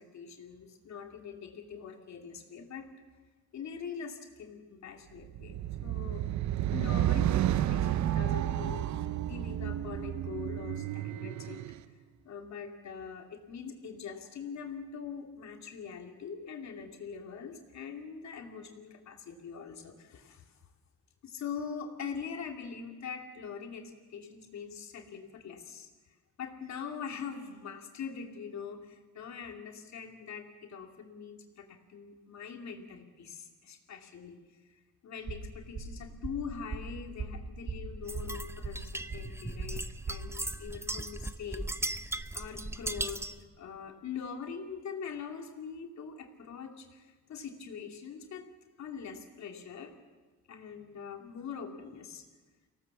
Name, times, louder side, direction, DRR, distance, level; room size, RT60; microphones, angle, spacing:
voice 1, 0.0-2.9 3.5-6.3 6.7-11.6 12.2-20.5 21.2-25.9 26.4-34.4 35.0-42.0 42.3-48.5 48.8-49.9 50.5-52.3, left 6 dB, 65° left, 3 dB, 2.8 m, -43 dB
sound 1, 5.3-11.8, right 12 dB, 65° right, 0.7 m, -31 dB
sound 2, 35.2-40.2, right 4 dB, 45° right, 5.3 m, -40 dB
sound 3, 38.1-43.4, right 2 dB, 10° right, 0.7 m, -38 dB
24.0 x 17.5 x 7.1 m, 1.3 s
cardioid pair, 90°, 30 cm